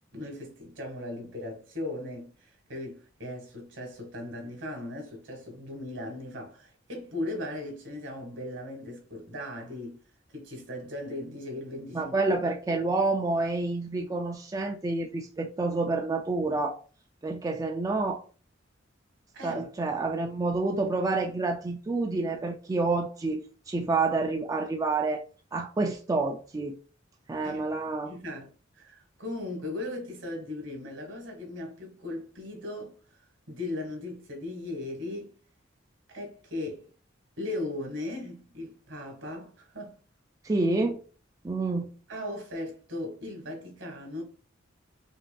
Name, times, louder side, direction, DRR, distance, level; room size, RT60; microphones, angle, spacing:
voice 1, 0.1-10.0 10.3-12.3 19.3-19.6 27.4-27.7 28.0-28.5 28.8-32.9 33.5-35.4 36.1-36.8 37.4-40.0 42.1-44.2, left 1 dB, 70° right, 1.6 m, -38 dB
voice 2, 11.9-16.8 17.2-18.2 19.4-25.2 25.5-26.7 27.3-28.1 40.4-41.0 41.4-41.9, right 3 dB, 20° right, 0.3 m, -28 dB
5.5 x 2.6 x 2.3 m
head